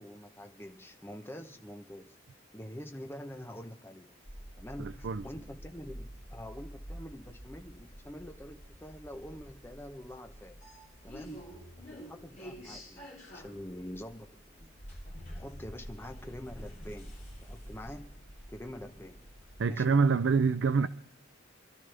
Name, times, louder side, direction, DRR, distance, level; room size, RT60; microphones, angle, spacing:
voice 1, 0.0-2.2 2.5-4.2 4.6-10.6 11.0-11.6 11.9-14.8 15.3-18.2 18.5-19.3 19.7-20.1, equal, 10° left, 0.8 m, -46 dB
sound 1, 4.2-9.6, equal, 30° right, 2.3 m, -59 dB
sound 2, 4.3-19.9, equal, 35° left, 6.7 m, -48 dB
voice 2, 4.8-5.2 19.6-20.9, right 5 dB, 55° right, 0.4 m, -26 dB
26.0 x 12.0 x 3.4 m
head